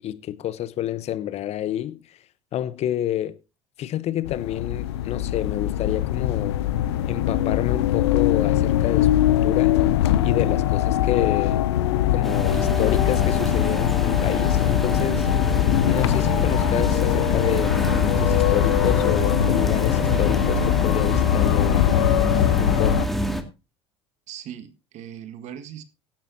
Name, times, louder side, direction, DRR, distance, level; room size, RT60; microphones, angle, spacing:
voice 1, 0.0-2.2 2.5-3.4 3.8-6.6 7.0-9.8 10.2-11.6 12.1-15.3 15.9-21.8 22.6-23.0, left 12 dB, 50° left, 0.9 m, -28 dB
sound 1, 4.2-23.1, left 12 dB, 75° left, 0.7 m, -22 dB
sound 2, 12.2-23.4, equal, ahead, 2.2 m, -27 dB
voice 2, 24.3-25.8, right 10 dB, 55° right, 1.8 m, -39 dB
16.5 x 12.0 x 2.8 m
hypercardioid pair, 70°, 14 cm